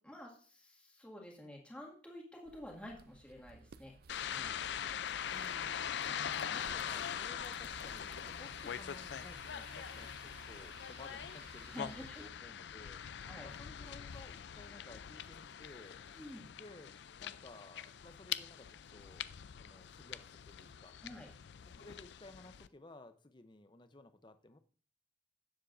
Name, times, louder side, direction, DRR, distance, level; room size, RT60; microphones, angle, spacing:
voice 1, 0.0-3.9 4.2-4.6 11.7-12.2 13.3-13.6 16.2-16.5 21.0-21.3, equal, 5° left, -1 dB, 1.9 m, -50 dB
sound 1, 2.5-12.3, right 5 dB, 55° right, 0.4 m, -57 dB
sound 2, 4.1-22.7, left 8 dB, 65° left, 0.4 m, -43 dB
voice 2, 5.3-5.8 6.4-11.9 12.2-13.0 13.4-16.1 16.6-19.3 19.6-21.0 21.6-24.6, left 2 dB, 25° left, 10 dB, 0.7 m, -56 dB
16.5 x 7.3 x 2.6 m, 0.42 s
head